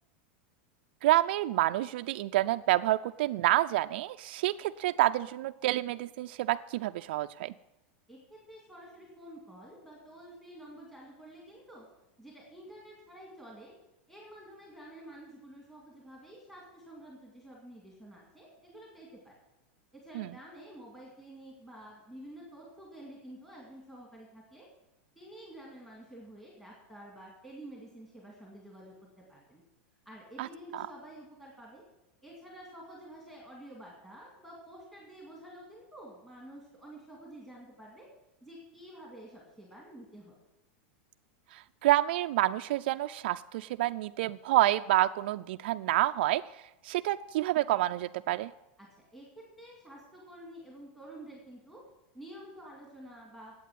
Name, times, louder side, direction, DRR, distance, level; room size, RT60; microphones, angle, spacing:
voice 1, 1.0-7.5 20.2-20.3 30.4-30.5 30.7-30.8 41.5-46.4 46.8-48.5, right 15 dB, 60° right, 8 dB, 0.3 m, -28 dB
voice 2, 8.1-11.8 12.2-13.7 14.1-19.4 19.9-24.7 25.2-29.6 30.1-31.8 32.2-38.1 38.4-40.3 48.8-51.8 52.1-53.5, right 1 dB, 5° left, -3 dB, 2.1 m, -50 dB
9.2 x 8.3 x 9.3 m, 0.94 s
supercardioid pair, 165°, 6 cm